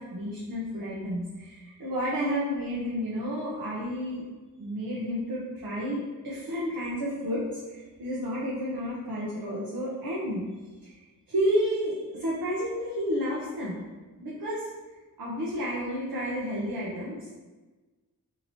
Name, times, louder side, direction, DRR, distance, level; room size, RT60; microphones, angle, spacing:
voice 1, 0.0-4.2 4.6-6.0 6.2-10.4 10.8-10.9 11.3-13.8 14.1-14.6 15.2-17.4, equal, 80° right, -7 dB, 0.7 m, -31 dB
2.8 x 2.6 x 2.9 m, 1.3 s
cardioid pair, 55°, 35 cm